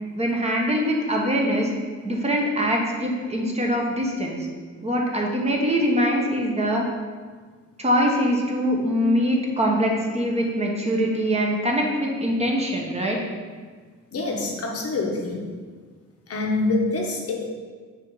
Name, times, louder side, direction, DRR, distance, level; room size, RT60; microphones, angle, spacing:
voice 1, 0.1-1.7 2.0-4.4 4.8-6.8 7.8-13.2, equal, 20° right, -1 dB, 1.0 m, -23 dB
voice 2, 14.1-15.5 16.3-17.5, left 2 dB, 50° left, 0 dB, 1.1 m, -26 dB
6.3 x 2.8 x 5.5 m, 1.5 s
cardioid pair, 90°, 30 cm